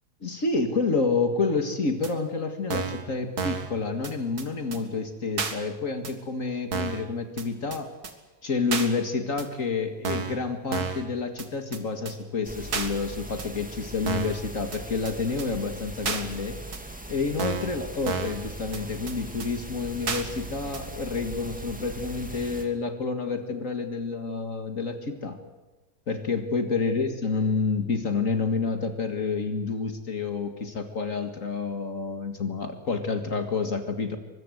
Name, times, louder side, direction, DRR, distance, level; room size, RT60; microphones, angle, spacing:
voice 1, 0.2-7.9 8.4-16.6 17.1-25.4 26.1-34.2, left 4 dB, 55° left, 7 dB, 2.2 m, -29 dB
sound 1, 2.0-2.1 2.7-3.0 3.4-3.7 4.0-4.1 4.4-4.5 4.7-4.8 5.4-5.5 6.0-6.1 6.7-7.0 7.4-7.5 7.7-7.8 8.0-8.1 8.7-8.9 9.4-9.5 10.0-10.4 10.7-11.1 11.4-11.5 11.7-11.8 12.1-12.2 12.7-12.9 13.4-13.5 14.1-14.4 14.7-14.8 15.1-15.2 15.4-15.5 16.1-16.2 16.7-16.8 17.4-17.7 18.1-18.4 18.7-18.8 19.1-19.2 19.4-19.5 20.1-20.2 20.7-20.8, right 5 dB, 75° right, 2.4 m, -30 dB
sound 2, 12.4-22.6, right 1 dB, 5° right, 2.5 m, -40 dB
24.0 x 21.5 x 8.0 m, 1.1 s
omnidirectional pair, 1.7 m